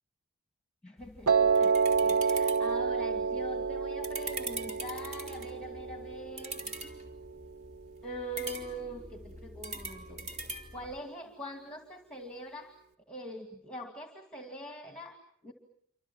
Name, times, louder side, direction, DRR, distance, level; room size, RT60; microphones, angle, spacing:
voice 1, 0.8-1.7 2.0-6.6 8.0-12.7 13.1-15.5, equal, 5° left, 5 dB, 2.2 m, -43 dB
sound 1, 1.0-11.0, right 2 dB, 30° right, 3.0 m, -44 dB
Piano, 1.3-7.4, right 5 dB, 80° right, 1.4 m, -29 dB
27.5 x 26.0 x 7.2 m, 0.68 s
head